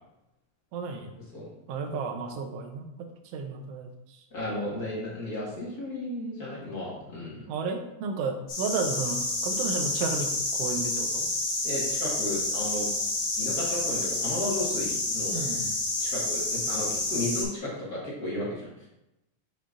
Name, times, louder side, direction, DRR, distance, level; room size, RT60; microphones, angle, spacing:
voice 1, 0.7-1.1 1.7-2.9 3.3-3.9 7.5-11.3 15.3-15.8, right 4 dB, 80° right, 4 dB, 1.4 m, -32 dB
voice 2, 4.3-7.4 11.6-12.9 13.4-15.5 16.0-18.9, left 1 dB, 40° left, -5 dB, 1.6 m, -34 dB
sound 1, 8.5-17.4, left 2 dB, 60° left, 2.6 m, -29 dB
7.0 x 5.6 x 2.5 m, 0.89 s
omnidirectional pair, 3.6 m